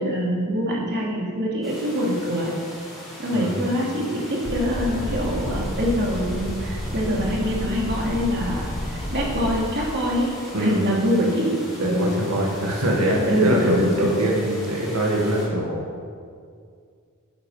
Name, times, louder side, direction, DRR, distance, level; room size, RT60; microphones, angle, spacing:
voice 1, 0.0-2.5 3.2-12.1 13.1-14.0, equal, 50° right, -3 dB, 2.6 m, -24 dB
sound 1, 1.6-15.5, equal, ahead, 3.2 m, -40 dB
Boat Water vehicle, 4.4-9.6, left 1 dB, 25° left, 0.9 m, -30 dB
voice 2, 10.5-10.9 11.8-15.8, right 1 dB, 90° right, -2 dB, 1.9 m, -23 dB
11.0 x 8.4 x 5.6 m, 2.2 s
head